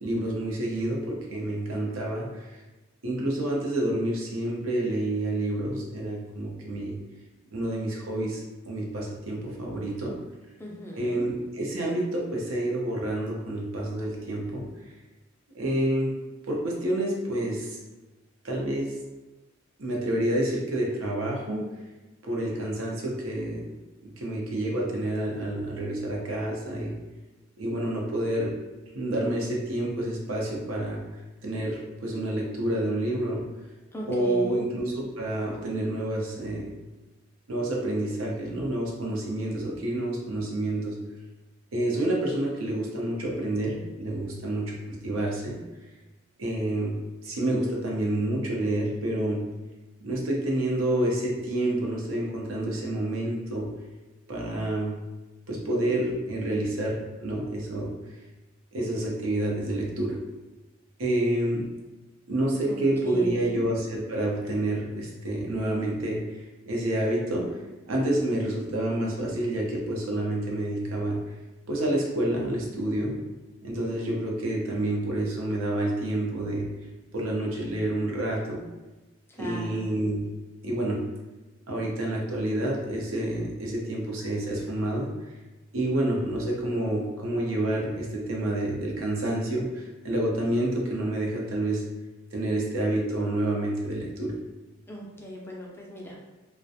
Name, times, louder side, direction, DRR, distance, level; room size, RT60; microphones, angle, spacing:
voice 1, 0.0-2.6 3.0-7.0 7.5-10.2 11.0-14.7 15.5-16.2 16.5-17.8 18.4-19.0 19.8-21.7 22.2-23.7 24.0-27.0 27.6-28.6 28.9-31.0 31.4-33.4 34.1-36.7 37.5-41.0 41.7-44.8 45.0-45.6 46.4-49.4 50.0-53.7 54.3-55.0 55.5-57.9 58.7-60.2 61.0-61.7 62.3-66.2 66.7-67.6 67.9-71.2 71.7-73.2 73.6-76.7 77.1-78.6 79.4-80.3 80.6-81.0 81.7-85.1 85.7-91.8 92.3-94.3, right 1 dB, 80° right, -2 dB, 0.6 m, -28 dB
voice 2, 10.6-11.3 33.9-34.7 62.7-63.6 79.4-79.9 94.9-96.2, equal, 10° left, -3 dB, 0.3 m, -38 dB
2.4 x 2.1 x 2.6 m, 1.1 s
head